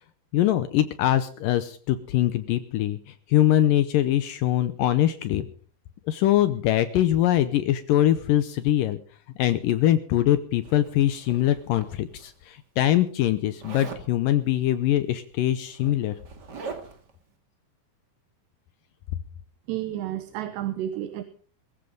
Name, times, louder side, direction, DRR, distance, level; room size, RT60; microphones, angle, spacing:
voice 1, 0.3-3.0 3.3-5.5 6.1-9.0 9.4-16.2, left 13 dB, 90° left, 11 dB, 1.9 m, -23 dB
Zipper (clothing), 10.6-12.3 13.6-14.1 15.2-15.3 15.6-17.1, right 4 dB, 35° right, 1.7 m, -41 dB
voice 2, 19.7-21.2, right 12 dB, 80° right, 10 dB, 3.2 m, -31 dB
21.5 x 15.0 x 3.8 m, 0.43 s
omnidirectional pair, 5.0 m